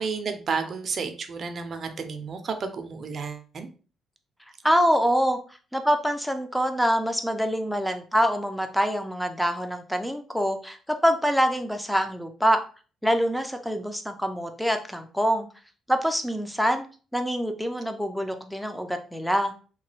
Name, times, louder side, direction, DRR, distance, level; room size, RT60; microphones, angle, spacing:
voice 1, 0.0-3.7, right 5 dB, 50° right, 7 dB, 0.5 m, -31 dB
voice 2, 4.6-5.4 5.7-10.8 11.0-12.6 13.0-15.5 15.9-16.9 17.1-19.5, equal, ahead, 7 dB, 0.5 m, -25 dB
2.9 x 2.2 x 3.1 m, 0.38 s
cardioid pair, 90°, 0 cm